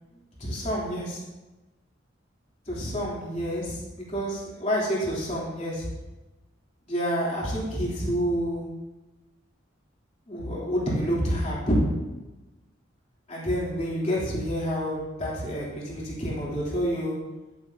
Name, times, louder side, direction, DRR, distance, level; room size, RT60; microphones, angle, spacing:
voice 1, 0.4-1.2 2.7-5.9 6.9-8.6 10.3-11.8 13.3-17.2, equal, 35° left, -6 dB, 3.1 m, -28 dB
10.5 x 9.4 x 2.8 m, 1.1 s
head